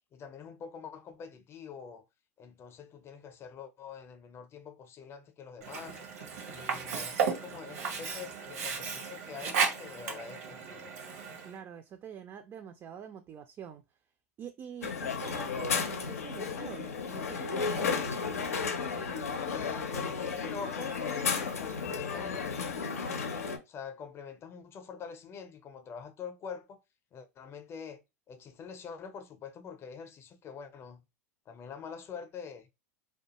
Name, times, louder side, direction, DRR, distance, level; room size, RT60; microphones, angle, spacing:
voice 1, 0.1-2.1 2.4-6.0 6.5-10.9 19.4-22.7 23.7-26.8 27.1-28.0 28.3-31.0 31.5-32.7, left 6 dB, 35° left, 0.6 m, -45 dB
Sink (filling or washing), 5.6-11.6, right 6 dB, 75° right, 0.8 m, -34 dB
voice 2, 11.4-13.8 14.4-18.1, right 8 dB, 30° right, 0.3 m, -45 dB
Crowd, 14.8-23.6, left 5 dB, 85° left, 0.5 m, -33 dB
2.4 x 2.2 x 2.8 m
hypercardioid pair, 95°, 8 cm